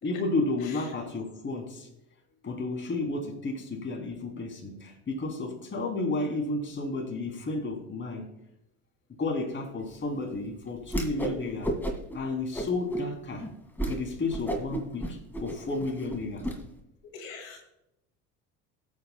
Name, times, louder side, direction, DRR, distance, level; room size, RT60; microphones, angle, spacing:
voice 1, 0.0-1.9 2.4-8.3 9.2-11.7 12.1-13.5 13.8-16.4, left 2 dB, 30° left, 1 dB, 3.1 m, -32 dB
voice 2, 0.6-0.9 17.1-17.6, left 5 dB, 85° left, 2 dB, 2.1 m, -43 dB
Whoosh swoosh swish, 10.8-11.4 11.6-12.2 12.5-13.0 13.4-13.5 13.8-14.0 14.3-16.6, right 1 dB, 5° left, 1.9 m, -32 dB
17.5 x 8.2 x 2.2 m, 0.85 s
supercardioid pair, 85°, 40 cm